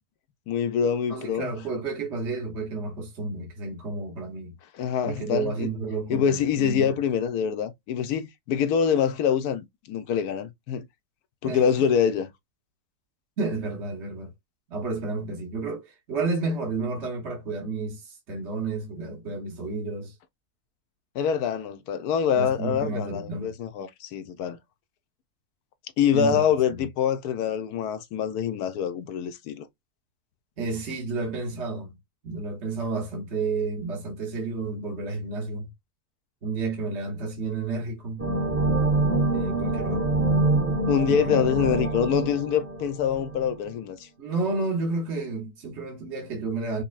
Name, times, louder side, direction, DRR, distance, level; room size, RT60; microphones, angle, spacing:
voice 1, 0.5-1.5 4.8-5.7 6.1-10.8 11.4-12.3 21.1-24.6 26.0-29.7 40.9-44.1, left 8 dB, 80° left, 1.2 m, -25 dB
voice 2, 1.1-4.5 5.0-7.0 11.4-11.7 13.4-14.3 14.7-20.2 22.3-23.5 26.1-26.4 30.6-32.0 32.2-35.7 36.4-38.3 39.3-40.0 41.1-41.4 44.2-46.8, right 3 dB, 50° right, 1.3 m, -31 dB
sound 1, 38.2-43.6, right 2 dB, 10° right, 1.0 m, -25 dB
5.3 x 2.2 x 2.4 m
omnidirectional pair, 1.6 m